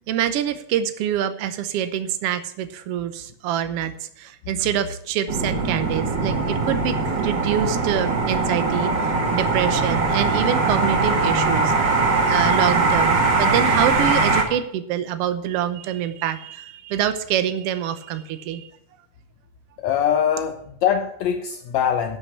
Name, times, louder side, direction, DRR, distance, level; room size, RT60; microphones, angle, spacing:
voice 1, 0.1-12.0 12.3-18.7, right 10 dB, 70° right, 11 dB, 1.5 m, -26 dB
sound 1, 5.3-14.4, right 3 dB, 45° right, 1.8 m, -21 dB
voice 2, 19.8-22.2, left 8 dB, 70° left, 4 dB, 1.9 m, -23 dB
11.5 x 5.7 x 8.3 m, 0.72 s
omnidirectional pair, 3.5 m